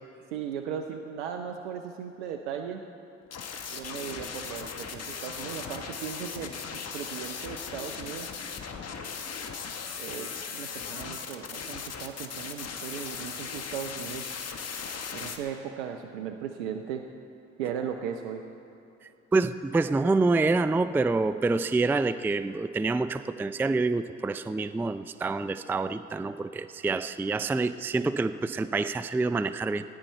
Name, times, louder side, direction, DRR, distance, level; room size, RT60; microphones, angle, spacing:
voice 1, 0.3-2.8 3.7-8.3 10.0-14.4 15.1-17.1 17.6-18.4, right 8 dB, 90° right, 5 dB, 0.6 m, -37 dB
sound 1, 3.2-15.4, left 6 dB, 45° left, 1.4 m, -38 dB
voice 2, 19.3-29.8, right 3 dB, 5° right, 12 dB, 0.4 m, -27 dB
18.0 x 10.5 x 4.4 m, 2.8 s
hypercardioid pair, 50°, 34 cm